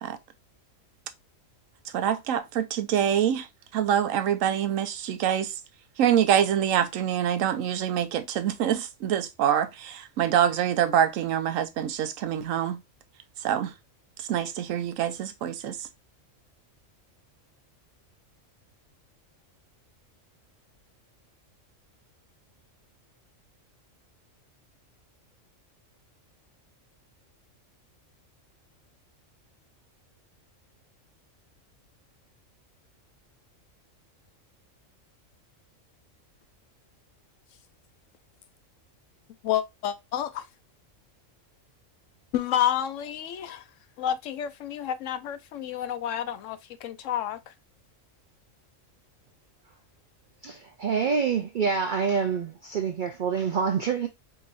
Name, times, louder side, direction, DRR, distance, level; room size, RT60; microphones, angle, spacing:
voice 1, 1.9-3.5 3.7-5.5 6.0-12.8 13.4-13.7 14.2-15.9, right 9 dB, 80° right, 1.0 m, -25 dB
voice 2, 39.4-40.4 42.3-43.6 44.0-47.5, left 10 dB, 75° left, 0.9 m, -29 dB
voice 3, 50.4-54.1, right 6 dB, 65° right, 0.4 m, -26 dB
4.6 x 3.0 x 2.5 m
omnidirectional pair, 1.4 m